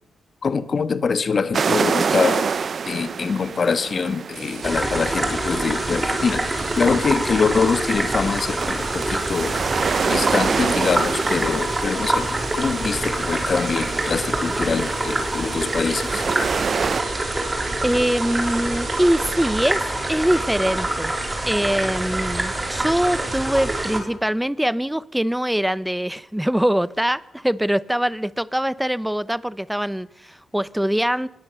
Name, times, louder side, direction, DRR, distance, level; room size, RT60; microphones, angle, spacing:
voice 1, 0.4-2.5 2.8-9.5 10.1-16.3, left 5 dB, 45° left, 1.4 m, -24 dB
sound 1, 1.5-17.0, right 6 dB, 50° right, 0.7 m, -28 dB
sound 2, 4.3-19.8, right 8 dB, 75° right, 1.9 m, -40 dB
sound 3, 4.6-24.0, right 2 dB, 20° right, 4.3 m, -25 dB
voice 2, 17.8-19.8 20.1-21.1 21.4-31.3, equal, 5° right, 0.8 m, -23 dB
25.0 x 20.5 x 6.9 m
cardioid pair, 110°, 0 cm